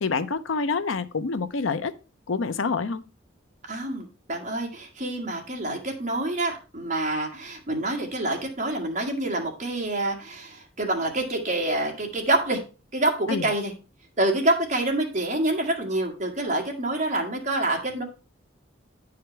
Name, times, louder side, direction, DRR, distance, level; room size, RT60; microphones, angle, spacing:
voice 1, 0.0-1.9 2.3-3.0 13.3-13.5, left 4 dB, 75° left, 0.6 m, -27 dB
voice 2, 3.7-12.6 12.9-13.7 14.2-18.0, right 2 dB, 35° right, 1.8 m, -27 dB
9.6 x 5.0 x 4.5 m
head